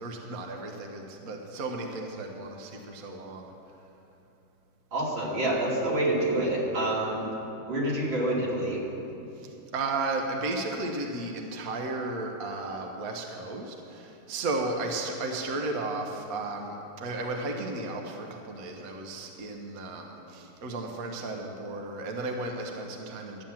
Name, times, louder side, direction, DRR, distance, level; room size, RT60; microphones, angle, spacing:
voice 1, 0.0-3.5 9.4-23.4, right 2 dB, 55° right, 2 dB, 1.4 m, -34 dB
voice 2, 4.9-7.3 7.6-8.8, right 1 dB, 85° right, -5 dB, 3.4 m, -27 dB
13.0 x 9.0 x 7.3 m, 2.8 s
omnidirectional pair, 2.1 m